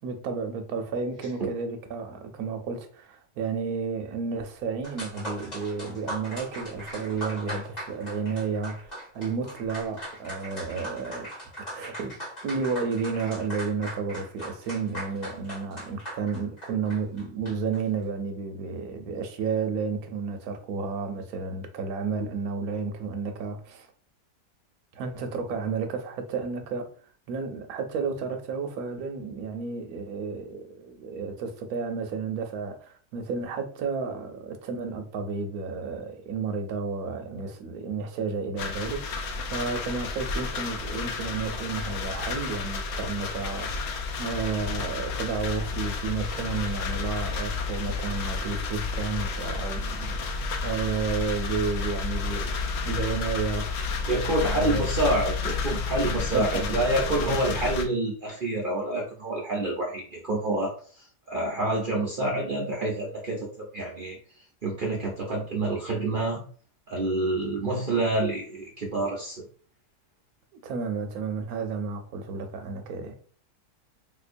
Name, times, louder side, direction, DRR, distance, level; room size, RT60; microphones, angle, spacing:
voice 1, 0.0-11.3 11.7-12.1 12.4-23.9 24.9-26.9 27.3-52.5 52.8-53.7 54.6-54.9 56.3-56.8 57.2-57.6 70.6-73.2, right 5 dB, 70° right, 1.0 m, -32 dB
sound 1, 4.6-4.7 4.8-17.8, right 1 dB, 30° left, 1.1 m, -39 dB
sound 2, 38.6-57.9, left 4 dB, 80° left, 0.5 m, -31 dB
voice 2, 54.1-64.2 64.6-66.4 66.9-69.4, right 2 dB, 50° right, 0.6 m, -28 dB
3.6 x 2.8 x 2.5 m
omnidirectional pair, 1.8 m